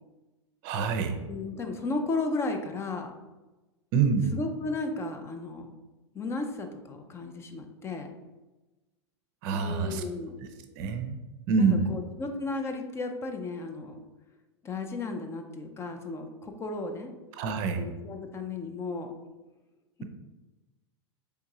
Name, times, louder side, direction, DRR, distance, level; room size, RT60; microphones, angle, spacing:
voice 1, 0.6-1.2 3.9-4.3 9.4-10.0 10.4-10.5 10.8-11.2 11.5-11.9 17.4-17.9, right 5 dB, 45° right, 7 dB, 0.6 m, -26 dB
voice 2, 1.3-3.1 4.3-5.7 6.1-8.1 9.5-10.4 11.6-14.0 14.6-17.1 17.7-19.1, left 3 dB, 15° left, 5 dB, 0.4 m, -34 dB
4.5 x 3.5 x 2.7 m, 1.1 s
figure-of-eight pair, 95°, 15 cm